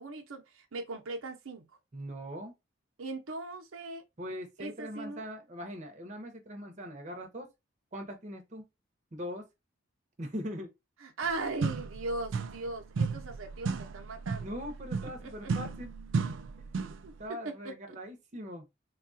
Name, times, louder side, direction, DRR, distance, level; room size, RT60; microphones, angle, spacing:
voice 1, 0.0-1.6 3.0-4.0 4.6-5.2 11.0-14.6 15.0-15.5 17.0-17.1 17.4-18.0, right 3 dB, 90° right, 0.7 m, -39 dB
voice 2, 1.9-2.5 4.2-7.5 7.9-8.6 9.1-9.4 10.2-10.7 14.4-16.0 16.6-16.7 17.2-18.7, equal, 35° right, 0.7 m, -41 dB
sound 1, 11.2-11.3 11.6-12.7 13.0-17.1, right 4 dB, 65° right, 0.4 m, -34 dB
3.5 x 2.3 x 2.5 m
head